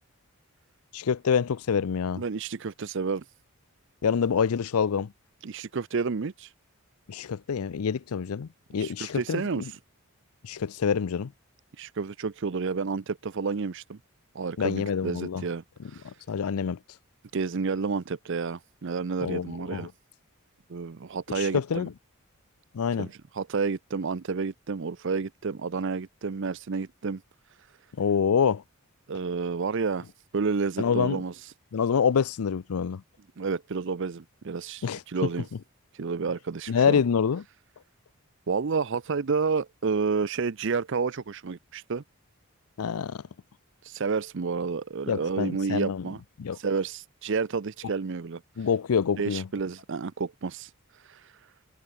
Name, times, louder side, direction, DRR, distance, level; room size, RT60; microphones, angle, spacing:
voice 1, 0.9-2.2 4.0-5.1 7.1-9.6 10.4-11.3 14.6-15.4 16.0-16.8 19.2-19.9 21.4-21.9 22.7-23.1 28.0-28.6 30.8-31.2 31.7-33.0 34.8-35.0 36.7-37.4 42.8-43.2 45.1-46.0 46.4-46.6 48.6-49.5, left 6 dB, 85° left, 0.5 m, -26 dB
voice 2, 2.2-3.3 5.4-6.5 8.8-9.8 11.8-14.0 14.3-16.2 17.3-19.9 20.7-21.9 23.0-27.2 27.5-27.8 29.1-31.5 33.4-35.5 35.9-37.0 38.5-42.0 43.8-46.2 46.5-48.7 49.2-51.5, right 4 dB, 55° right, 0.5 m, -30 dB
head